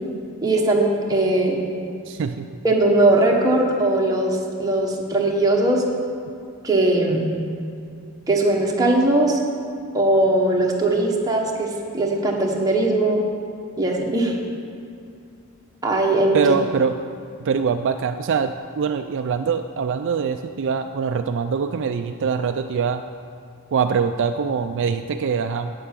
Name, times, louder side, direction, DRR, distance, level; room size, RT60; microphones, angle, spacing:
voice 1, 0.4-1.6 2.6-5.8 6.6-7.2 8.3-9.4 9.9-13.2 13.8-14.4 15.8-16.4, right 2 dB, 15° right, -1 dB, 1.3 m, -19 dB
voice 2, 2.1-2.5 16.3-17.0 17.4-23.0 23.7-25.7, right 6 dB, 55° right, 8 dB, 0.4 m, -23 dB
9.0 x 8.1 x 7.5 m, 2.5 s
head